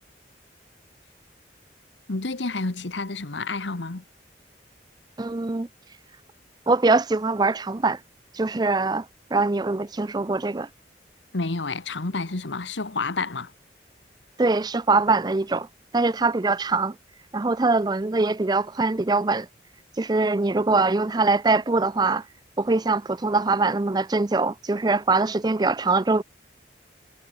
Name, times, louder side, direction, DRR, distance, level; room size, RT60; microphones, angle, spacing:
voice 1, 2.1-4.0 11.3-13.5, left 3 dB, 85° left, 1.4 m, -29 dB
voice 2, 5.2-5.7 6.7-8.0 8.3-9.1 9.3-10.7 14.4-15.7 15.9-16.9 17.3-19.5 20.0-22.2 22.6-26.2, right 3 dB, 20° right, 0.5 m, -22 dB
head